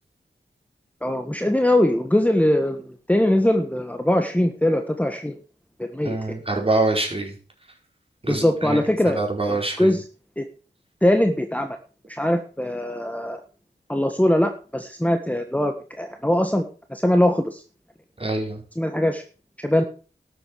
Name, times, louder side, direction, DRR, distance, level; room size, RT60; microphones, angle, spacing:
voice 1, 1.0-5.3 5.8-6.2 8.3-10.0 10.4-10.5 11.0-11.8 12.1-13.4 13.9-16.6 16.9-17.6 18.8-19.2 19.6-19.8, left 1 dB, 10° left, 6 dB, 1.4 m, -21 dB
voice 2, 6.0-7.3 8.2-8.8 9.1-9.9 18.2-18.6, right 2 dB, 30° right, 1 dB, 4.9 m, -25 dB
12.5 x 8.0 x 6.8 m, 0.37 s
wide cardioid pair, 70°, 19 cm